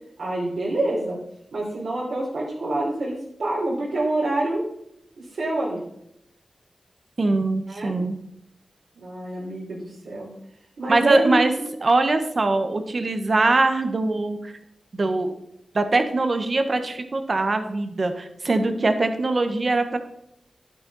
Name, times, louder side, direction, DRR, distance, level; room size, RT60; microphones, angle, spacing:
voice 1, 0.2-1.2 1.5-4.6 5.2-5.8 7.7-7.9 8.9-10.3 10.8-11.7, right 2 dB, 80° right, -6 dB, 3.9 m, -27 dB
voice 2, 7.2-8.2 10.9-11.5 11.8-14.6 14.9-15.3 15.7-20.0, right 2 dB, 45° right, 8 dB, 1.4 m, -22 dB
11.5 x 9.2 x 4.2 m, 0.75 s
wide cardioid pair, 105°, 0 cm